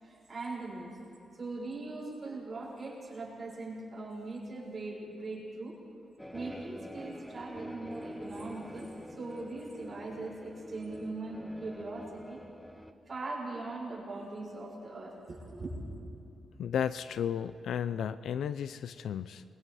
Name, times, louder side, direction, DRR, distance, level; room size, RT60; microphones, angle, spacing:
voice 1, 0.0-0.9 1.4-5.8 6.3-12.4 13.1-15.8, right 2 dB, 35° right, -4 dB, 6.7 m, -40 dB
sound 1, 6.2-12.9, left 1 dB, 5° left, 0.9 m, -46 dB
voice 2, 16.6-19.4, left 8 dB, 85° left, 13 dB, 0.5 m, -33 dB
28.0 x 24.0 x 4.2 m, 2.7 s
cardioid pair, 110°, 0 cm